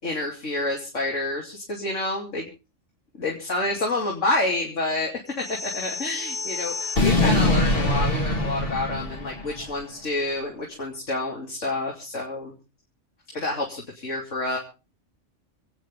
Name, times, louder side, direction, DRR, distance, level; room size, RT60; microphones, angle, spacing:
voice 1, 0.0-2.5 3.2-12.6 13.3-14.6, left 2 dB, 85° left, -1 dB, 3.2 m, -28 dB
sound 1, 5.4-9.7, left 2 dB, 50° left, 2.3 m, -24 dB
28.0 x 9.4 x 3.7 m, 0.33 s
omnidirectional pair, 1.2 m